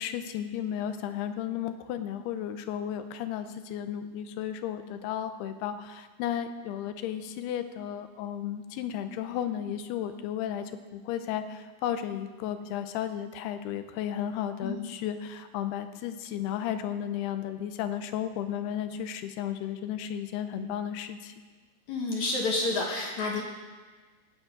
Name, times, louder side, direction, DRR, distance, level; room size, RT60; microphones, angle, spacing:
voice 1, 0.0-21.4, left 10 dB, 85° left, 9 dB, 2.7 m, -34 dB
voice 2, 21.9-23.4, left 3 dB, 60° left, -1 dB, 2.1 m, -29 dB
16.0 x 8.9 x 5.1 m, 1.4 s
omnidirectional pair, 4.7 m